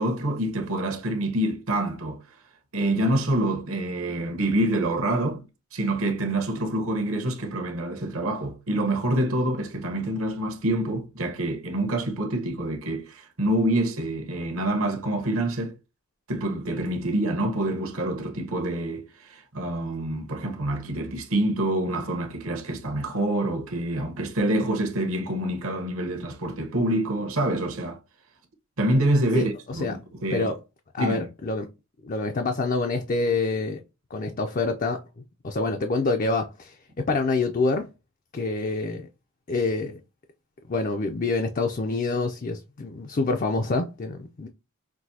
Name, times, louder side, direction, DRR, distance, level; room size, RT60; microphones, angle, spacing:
voice 1, 0.0-2.2 2.7-5.4 5.7-15.7 16.3-28.0 28.8-30.5 31.0-31.2, right 1 dB, 70° right, 1.1 m, -26 dB
voice 2, 29.3-30.0 30.3-30.5 30.9-31.7 32.0-33.8 34.1-35.0 35.4-37.9 38.3-39.1 39.5-39.9 40.7-44.5, left 3 dB, 35° left, 0.4 m, -26 dB
6.0 x 2.6 x 2.7 m
head